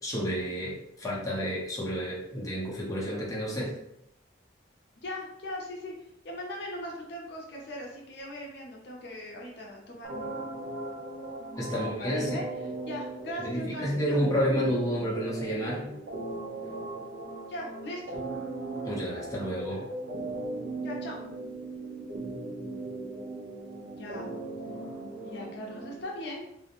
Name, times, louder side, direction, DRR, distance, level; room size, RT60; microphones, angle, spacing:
voice 1, 0.0-3.8 11.6-12.4 13.4-15.9 18.8-19.8, equal, 20° left, -5 dB, 0.6 m, -30 dB
voice 2, 5.0-5.9 6.2-10.7 11.4-14.2 17.5-18.2 20.8-21.2 23.8-24.3 25.2-26.4, left 1 dB, 60° left, -2 dB, 0.5 m, -39 dB
sound 1, 10.0-26.0, right 2 dB, 65° right, 0.6 m, -38 dB
2.5 x 2.0 x 2.8 m, 0.79 s
head